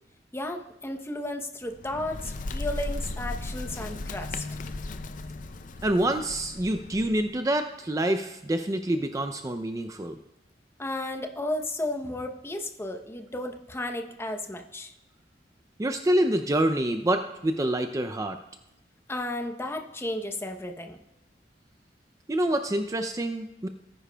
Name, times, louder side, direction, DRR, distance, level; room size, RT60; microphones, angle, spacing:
voice 1, 0.3-4.5 10.8-14.9 19.1-21.0, left 1 dB, 15° left, 4 dB, 0.8 m, -33 dB
Bird, 1.6-7.4, left 2 dB, 50° left, 0.5 m, -36 dB
voice 2, 5.8-10.2 15.8-18.4 22.3-23.7, right 1 dB, 20° right, 7 dB, 0.4 m, -26 dB
18.5 x 9.8 x 2.3 m, 0.88 s
head